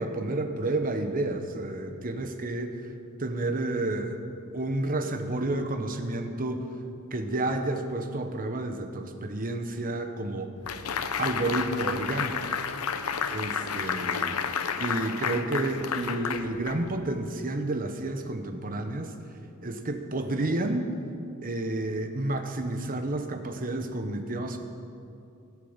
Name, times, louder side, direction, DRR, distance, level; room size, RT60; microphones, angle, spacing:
voice 1, 0.0-2.8 3.2-4.3 4.5-6.7 7.1-10.5 11.2-12.4 13.3-14.4 14.8-19.1 19.6-20.9 21.4-24.6, right 2 dB, 40° right, 6 dB, 1.1 m, -30 dB
sound 1, 10.7-17.1, left 6 dB, 85° left, 0.7 m, -31 dB
15.5 x 8.6 x 7.3 m, 2.6 s
head